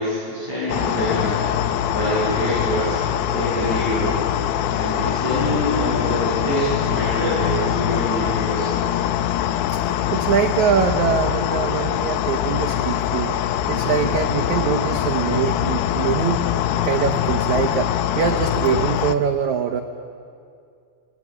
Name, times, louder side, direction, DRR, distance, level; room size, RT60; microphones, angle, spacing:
voice 1, 0.0-1.4 1.9-3.0 3.3-4.2 4.7-8.8, equal, 40° left, -9 dB, 9.1 m, -25 dB
sound 1, 0.7-19.2, left 11 dB, 80° left, 2.8 m, -23 dB
voice 2, 10.1-13.4 13.7-16.5 16.8-19.8, right 8 dB, 80° right, 4 dB, 1.7 m, -23 dB
27.5 x 21.0 x 9.8 m, 2.3 s
omnidirectional pair, 5.0 m